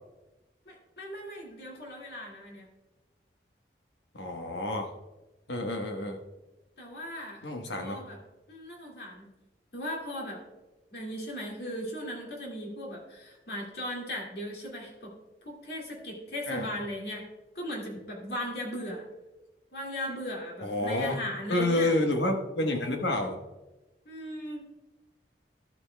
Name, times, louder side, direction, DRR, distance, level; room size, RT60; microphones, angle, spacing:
voice 1, 0.7-2.7 6.8-7.4 7.8-8.2 8.5-9.3 9.7-10.4 10.9-15.1 15.4-17.2 17.6-19.0 19.7-22.0 24.1-24.7, equal, 60° left, -2 dB, 2.2 m, -38 dB
voice 2, 4.1-4.9 5.5-6.2 7.4-8.0 16.5-16.7 20.6-21.2 21.5-23.4, left 1 dB, 75° left, 3 dB, 1.2 m, -29 dB
12.5 x 8.2 x 2.2 m, 1.1 s
head